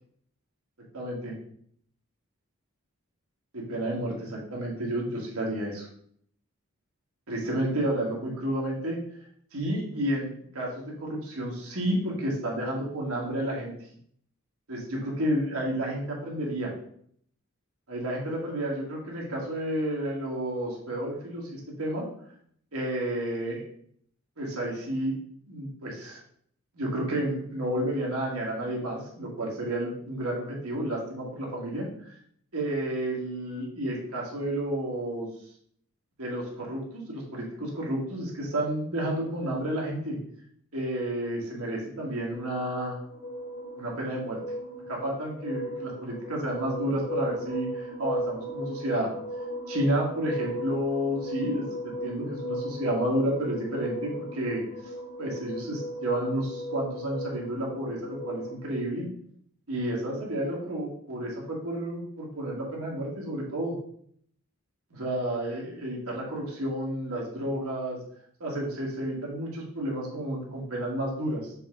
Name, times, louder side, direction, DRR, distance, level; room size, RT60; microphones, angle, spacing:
voice 1, 0.9-1.3 3.5-5.9 7.3-9.0 9.5-13.7 14.7-16.7 17.9-22.1 22.7-23.6 24.4-25.2 25.5-26.2 26.7-31.9 32.5-35.3 36.2-40.2 40.7-43.0 43.8-44.4 44.9-49.1 49.7-54.6 55.2-59.1 59.7-63.8 64.9-68.0 68.4-71.5, right 1 dB, 85° right, -3 dB, 1.9 m, -31 dB
sound 1, 42.3-58.8, equal, 40° left, 1.0 m, -37 dB
6.8 x 3.7 x 3.8 m, 0.65 s
head